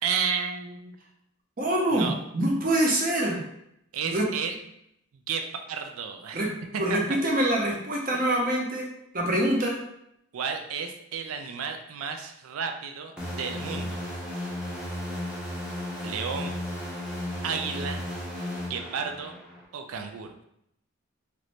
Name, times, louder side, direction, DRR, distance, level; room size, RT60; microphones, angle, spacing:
voice 1, 0.0-1.0 1.9-2.1 3.9-4.5 5.3-6.4 6.7-7.0 10.3-14.0 16.0-16.6 17.4-18.0 18.7-19.4 19.7-20.3, right 6 dB, 85° right, 5 dB, 0.4 m, -32 dB
voice 2, 1.6-2.1 2.3-3.4 4.0-4.2 6.3-6.5 6.8-8.9 9.1-9.8, right 1 dB, 40° right, -1 dB, 0.7 m, -25 dB
sound 1, 13.2-19.7, left 1 dB, 5° right, 0.6 m, -34 dB
3.0 x 2.6 x 3.1 m, 0.77 s
head